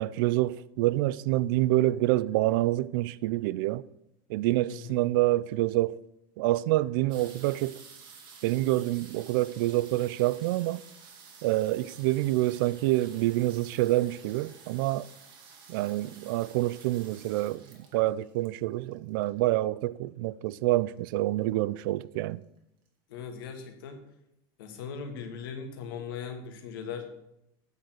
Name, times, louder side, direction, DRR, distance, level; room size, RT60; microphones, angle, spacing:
voice 1, 0.0-3.8 4.3-6.0 6.4-7.8 8.4-10.8 11.4-15.1 15.7-17.6 17.9-22.4, right 17 dB, 70° right, 0.4 m, -27 dB
voice 2, 4.7-5.1 23.1-24.1 24.6-27.1, left 6 dB, 90° left, 1.6 m, -39 dB
sound 1, 7.1-19.6 20.5-20.6 20.7-21.1 21.5-22.0 22.6-22.7 22.9-23.0, right 5 dB, 45° right, 2.2 m, -52 dB
8.3 x 6.5 x 6.0 m
supercardioid pair, 150°, 12 cm